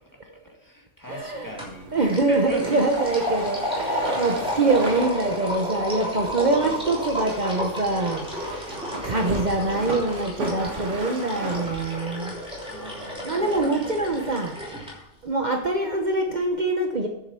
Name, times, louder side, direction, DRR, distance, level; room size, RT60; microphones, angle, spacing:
voice 1, 0.2-2.8 4.5-4.9 6.5-7.0 9.2-9.9 12.7-13.4, equal, 15° left, -1 dB, 2.2 m, -39 dB
voice 2, 1.1-1.5 1.9-12.3 13.2-17.1, right 2 dB, 40° right, 2 dB, 1.1 m, -25 dB
sound 1, 1.4-14.2, right 2 dB, 85° right, 2.0 m, -38 dB
sound 2, 1.6-1.8 2.1-14.9, equal, 5° right, 3.2 m, -32 dB
9.6 x 7.6 x 5.7 m, 0.88 s
omnidirectional pair, 1.2 m